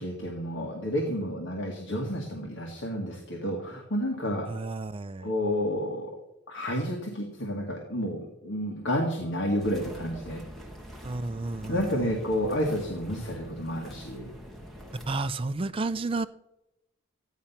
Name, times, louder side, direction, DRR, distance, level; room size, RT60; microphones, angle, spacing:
voice 1, 0.0-4.5 5.2-6.2 6.5-10.4 11.7-14.4, equal, 55° left, 0 dB, 1.9 m, -30 dB
voice 2, 4.5-5.3 11.0-12.1 15.1-16.3, right 3 dB, 25° right, 13 dB, 0.4 m, -31 dB
sound 1, 9.6-15.2, equal, ahead, 1.9 m, -44 dB
14.5 x 10.5 x 5.7 m, 0.90 s
head